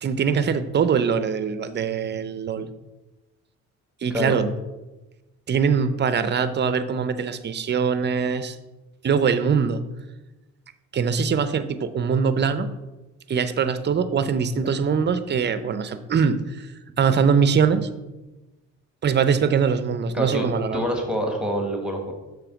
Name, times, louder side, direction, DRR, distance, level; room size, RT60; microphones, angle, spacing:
voice 1, 0.0-2.7 4.0-4.5 5.5-8.6 9.0-9.8 10.9-12.7 13.3-16.7 17.0-17.9 19.0-20.8, right 6 dB, 35° right, 11 dB, 0.5 m, -22 dB
voice 2, 20.1-20.5 20.7-22.1, equal, 5° right, 1 dB, 1.3 m, -26 dB
6.8 x 3.2 x 6.0 m, 1.1 s
cardioid pair, 90°, 30 cm